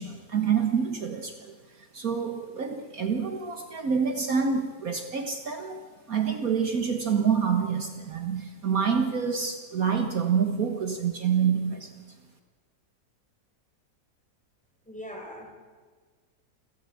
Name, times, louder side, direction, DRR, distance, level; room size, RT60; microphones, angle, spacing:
voice 1, 0.0-12.0, right 6 dB, 60° right, 5 dB, 1.8 m, -27 dB
voice 2, 14.9-15.5, equal, 5° left, 1 dB, 4.8 m, -40 dB
28.0 x 14.5 x 8.6 m, 1.5 s
omnidirectional pair, 1.8 m